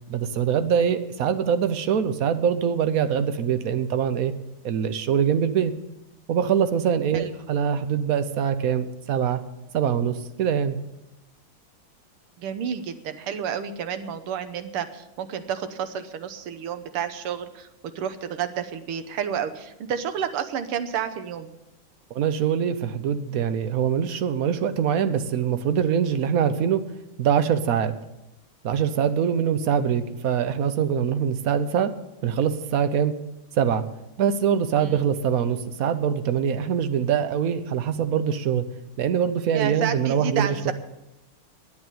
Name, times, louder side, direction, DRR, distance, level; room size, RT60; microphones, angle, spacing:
voice 1, 0.1-4.3 4.6-5.7 6.3-9.4 9.7-10.8 22.1-26.8 27.2-27.9 28.6-31.9 32.2-33.1 33.6-33.8 34.2-38.6 39.0-40.7, right 8 dB, 65° right, 10 dB, 0.9 m, -23 dB
voice 2, 12.4-17.7 18.0-21.5 34.8-35.0 39.5-40.7, right 8 dB, 85° right, 10 dB, 1.8 m, -30 dB
10.5 x 8.6 x 9.2 m, 0.92 s
omnidirectional pair, 2.4 m